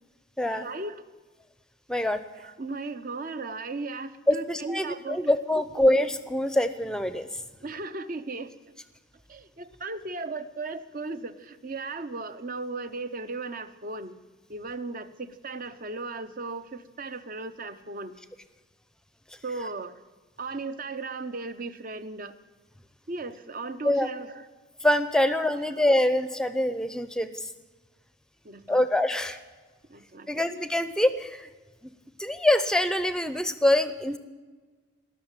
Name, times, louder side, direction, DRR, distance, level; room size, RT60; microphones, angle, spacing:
voice 1, 0.4-1.0 2.4-5.3 7.6-8.5 9.3-14.1 14.5-18.1 19.4-20.0 20.4-22.3 23.1-24.5 25.2-25.3 25.7-25.8 28.4-28.8 29.9-30.4, right 3 dB, 40° right, 11 dB, 0.7 m, -36 dB
voice 2, 1.9-2.2 4.3-7.3 23.8-24.1 24.8-27.5 28.7-29.4 30.3-31.5 31.8-31.9 32.2-34.2, left 1 dB, 5° left, 11 dB, 0.6 m, -24 dB
19.0 x 6.6 x 9.1 m, 1.3 s
head